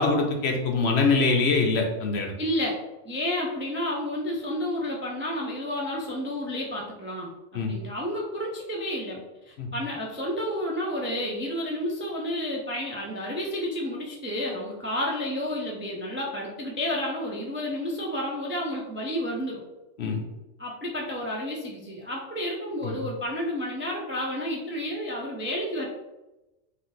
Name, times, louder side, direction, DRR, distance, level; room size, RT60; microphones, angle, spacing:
voice 1, 0.0-2.3 7.5-7.7 9.6-9.7 20.0-20.2 22.8-23.0, left 3 dB, 65° left, 2 dB, 0.9 m, -24 dB
voice 2, 2.4-2.8 3.0-9.2 9.5-19.6 20.6-25.9, left 1 dB, 20° right, -2 dB, 0.3 m, -31 dB
3.8 x 2.6 x 3.9 m, 1.0 s
omnidirectional pair, 1.3 m